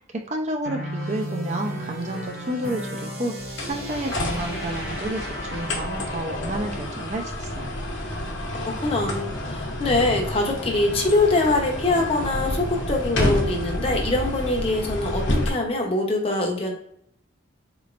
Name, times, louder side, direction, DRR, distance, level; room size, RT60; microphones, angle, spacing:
voice 1, 0.3-3.3 3.7-7.8, right 1 dB, 35° right, 3 dB, 0.4 m, -30 dB
sound 1, 0.6-6.8, equal, 50° right, 0.8 m, -34 dB
sound 2, 3.4-15.5, left 1 dB, 70° left, 0.9 m, -29 dB
voice 2, 8.8-16.7, left 2 dB, 30° left, 0 dB, 0.7 m, -23 dB
4.1 x 3.0 x 2.5 m, 0.69 s
head